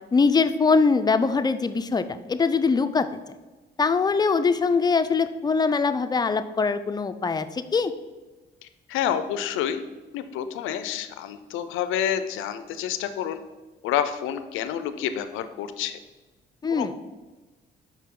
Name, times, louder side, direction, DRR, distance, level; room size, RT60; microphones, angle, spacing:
voice 1, 0.1-3.1 3.8-7.9 16.6-16.9, left 4 dB, 20° left, 11 dB, 0.4 m, -22 dB
voice 2, 8.9-9.8 10.1-13.4 13.8-16.0 16.7-16.9, left 9 dB, 90° left, 10 dB, 0.4 m, -28 dB
5.8 x 4.5 x 3.7 m, 1.2 s
cardioid pair, 90°, 20 cm